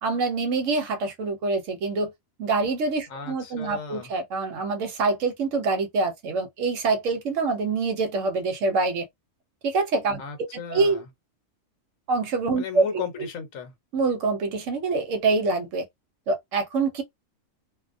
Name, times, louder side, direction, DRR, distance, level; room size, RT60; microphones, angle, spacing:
voice 1, 0.0-2.1 2.4-9.1 9.6-10.2 10.7-11.0 12.1-13.0 13.9-15.9 16.3-17.0, right 3 dB, 65° right, 0.9 m, -25 dB
voice 2, 3.1-4.1 10.2-11.0 12.5-13.7, left 7 dB, 70° left, 1.1 m, -35 dB
2.5 x 2.1 x 2.5 m
omnidirectional pair, 1.5 m